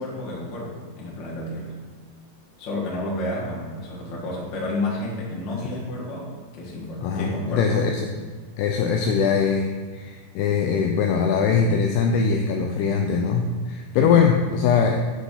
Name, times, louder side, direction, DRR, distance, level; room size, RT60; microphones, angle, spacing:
voice 1, 0.0-1.7 2.6-7.8 8.8-9.0 13.9-14.3, left 1 dB, 60° left, -5 dB, 1.2 m, -31 dB
voice 2, 7.0-8.1 8.6-15.0, left 6 dB, 85° left, 3 dB, 2.3 m, -22 dB
8.1 x 6.7 x 3.9 m, 1.5 s
omnidirectional pair, 5.1 m